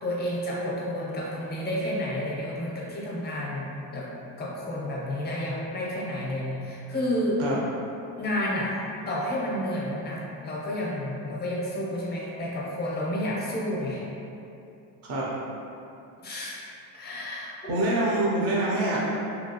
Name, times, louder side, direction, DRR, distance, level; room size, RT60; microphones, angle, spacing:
voice 1, 0.0-4.1 4.4-7.6 8.2-8.8 9.1-14.0 16.2-16.6 16.9-17.5, left 1 dB, 25° left, -4 dB, 0.6 m, -30 dB
voice 2, 17.7-19.0, right 1 dB, 35° right, -5 dB, 0.5 m, -25 dB
2.8 x 2.8 x 2.7 m, 2.7 s
cardioid pair, 135°, 42 cm